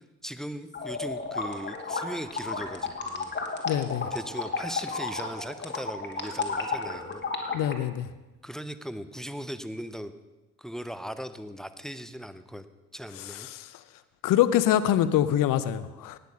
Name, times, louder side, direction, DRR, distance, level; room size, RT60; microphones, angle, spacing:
voice 1, 0.2-3.3 4.1-7.2 8.4-10.1 10.6-12.6 12.9-13.5, equal, ahead, 12 dB, 0.7 m, -38 dB
sound 1, 0.7-7.7, left 4 dB, 25° left, 2.2 m, -33 dB
voice 2, 3.7-4.1 7.5-8.1 13.5-13.6 14.2-16.2, left 11 dB, 50° left, 14 dB, 0.9 m, -24 dB
18.5 x 6.9 x 5.4 m, 1.1 s
figure-of-eight pair, 50°, 43 cm